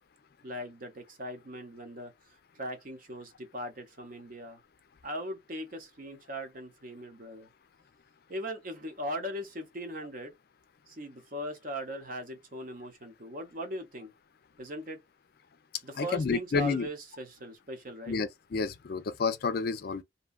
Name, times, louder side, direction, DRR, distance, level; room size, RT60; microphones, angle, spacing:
voice 1, 0.4-2.1 2.5-4.6 5.0-7.5 8.3-10.3 10.9-14.1 14.6-15.0 15.8-18.2, equal, 45° right, 0.8 m, -39 dB
voice 2, 16.0-16.9 18.1-20.0, left 4 dB, 50° left, 0.4 m, -30 dB
2.7 x 2.3 x 2.3 m
head